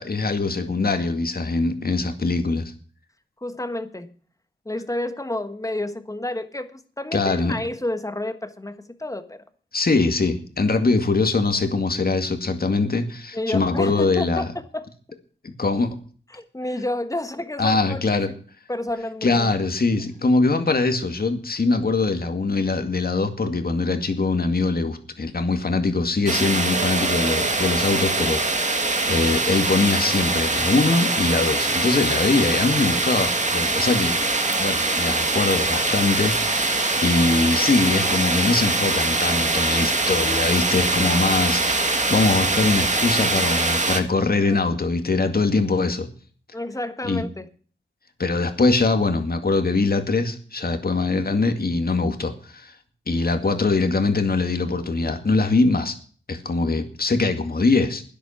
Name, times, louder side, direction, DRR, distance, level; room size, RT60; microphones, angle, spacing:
voice 1, 0.0-2.7 7.1-7.6 9.7-14.5 15.4-16.0 17.6-18.3 19.2-34.2 34.6-46.1 47.0-47.2 48.2-52.7 53.1-55.9 56.3-58.0, left 3 dB, 50° left, 2.2 m, -22 dB
voice 2, 3.4-4.1 4.6-9.4 13.3-14.9 16.3-18.4 18.7-19.5 44.2-44.6 46.5-47.5, left 1 dB, 15° left, 1.4 m, -30 dB
sound 1, 26.3-44.0, right 3 dB, 35° right, 2.0 m, -23 dB
sound 2, 26.6-35.0, right 6 dB, 80° right, 3.1 m, -38 dB
12.5 x 10.0 x 5.9 m
wide cardioid pair, 80°, 20 cm